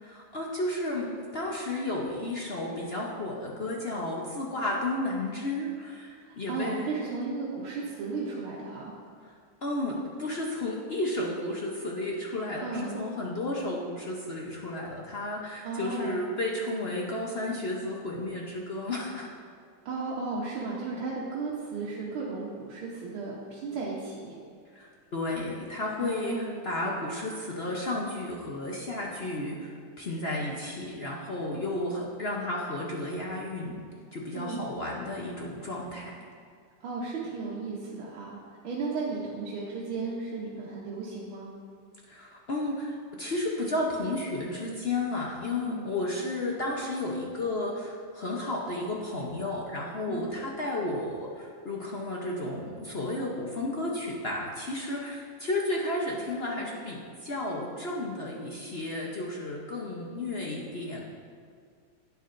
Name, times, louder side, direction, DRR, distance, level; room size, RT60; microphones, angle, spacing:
voice 1, 0.0-6.9 9.6-19.3 24.7-33.8 34.1-36.1 42.1-61.0, left 2 dB, 55° left, -3 dB, 0.7 m, -33 dB
voice 2, 6.2-8.9 12.6-13.0 15.6-16.2 19.9-24.3 26.0-26.6 34.4-34.7 36.8-41.5 45.7-45.9 50.1-50.3, right 4 dB, 85° right, -5 dB, 1.8 m, -35 dB
11.0 x 9.5 x 2.6 m, 2.1 s
omnidirectional pair, 2.2 m